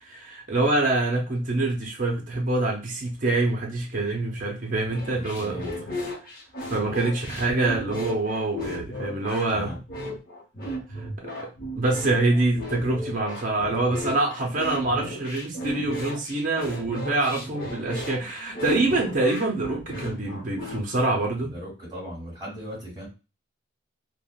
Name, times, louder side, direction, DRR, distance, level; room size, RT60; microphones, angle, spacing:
voice 1, 0.1-5.6 6.7-9.7 10.9-11.5 11.8-21.5, right 2 dB, 40° right, 0 dB, 0.6 m, -25 dB
sound 1, 4.9-20.8, equal, 45° left, 0.8 m, -35 dB
voice 2, 5.1-5.8 9.5-9.8 17.3-17.6 21.5-23.1, equal, 20° right, -3 dB, 1.5 m, -38 dB
3.4 x 2.1 x 2.3 m, 0.30 s
head